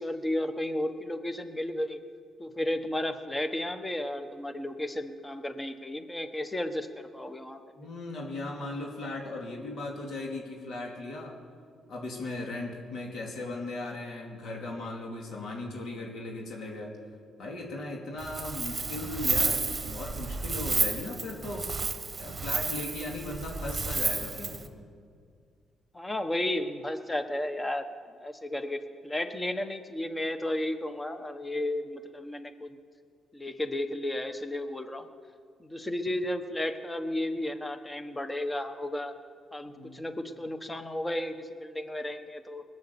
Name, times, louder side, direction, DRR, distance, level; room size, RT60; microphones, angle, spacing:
voice 1, 0.0-2.0 2.4-7.6 25.9-27.8 28.2-32.8 33.3-35.1 35.6-39.1 39.5-42.6, left 1 dB, 15° left, 8 dB, 1.2 m, -33 dB
voice 2, 7.8-11.4 11.9-16.9 17.4-21.7 22.2-24.6 39.8-40.0, left 2 dB, 70° left, -1 dB, 2.8 m, -37 dB
Wind, 18.2-24.7, right 4 dB, 30° right, 1.2 m, -31 dB
20.0 x 8.6 x 7.0 m, 2.2 s
cardioid pair, 90°, 0 cm